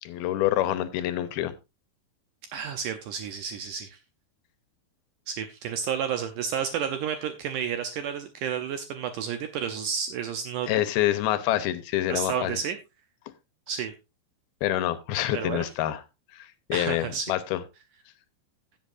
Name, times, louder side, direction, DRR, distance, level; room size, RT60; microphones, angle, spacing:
voice 1, 0.0-1.5 10.7-12.6 14.6-16.0 16.3-17.6, left 13 dB, 80° left, 12 dB, 2.7 m, -27 dB
voice 2, 2.5-4.0 5.3-10.7 12.1-12.8 13.7-13.9 15.3-15.7 16.7-17.3, right 7 dB, 75° right, 8 dB, 2.0 m, -31 dB
16.0 x 7.9 x 2.5 m, 0.25 s
omnidirectional pair, 4.5 m